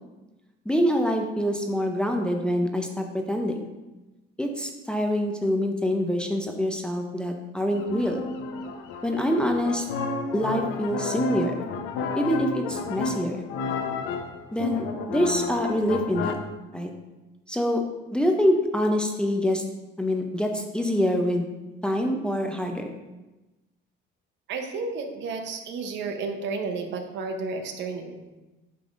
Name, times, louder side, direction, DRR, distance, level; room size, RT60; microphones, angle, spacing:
voice 1, 0.7-3.6 4.4-8.2 9.0-9.8 10.3-11.7 12.2-13.4 14.5-16.4 16.7-16.9 17.5-17.8 18.1-19.6 20.0-21.5 21.8-22.9, equal, 5° left, 2 dB, 0.6 m, -25 dB
sound 1, 7.7-16.3, left 4 dB, 80° left, 0.7 m, -31 dB
voice 2, 24.5-28.3, right 4 dB, 65° right, 5 dB, 0.9 m, -32 dB
8.6 x 5.3 x 2.5 m, 1.1 s
cardioid pair, 125°, 20 cm